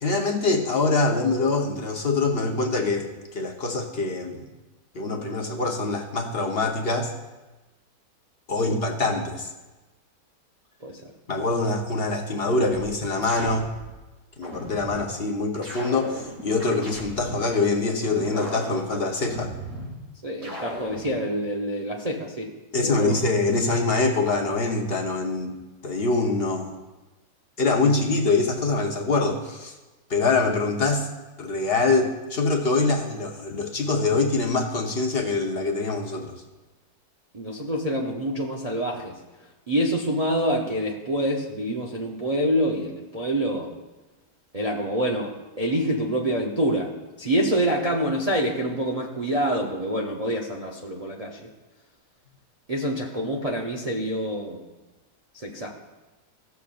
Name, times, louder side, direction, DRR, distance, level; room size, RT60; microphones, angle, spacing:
voice 1, 0.0-4.4 4.9-7.1 8.5-9.5 11.3-13.7 14.4-19.5 22.7-25.6 25.8-26.8 27.6-29.7 30.1-31.1 31.4-36.3, left 3 dB, 45° left, 1 dB, 0.9 m, -24 dB
voice 2, 10.8-11.1 20.2-22.5 22.8-23.2 37.3-39.2 39.7-43.7 44.5-51.5 52.7-54.6 55.3-55.7, equal, 40° right, -2 dB, 0.5 m, -26 dB
sound 1, 13.2-13.9 14.4-15.1 15.6-17.5 18.0-19.9 20.4-21.1, equal, 80° right, 4.1 m, -37 dB
16.5 x 6.9 x 2.5 m, 1.1 s
omnidirectional pair, 1.8 m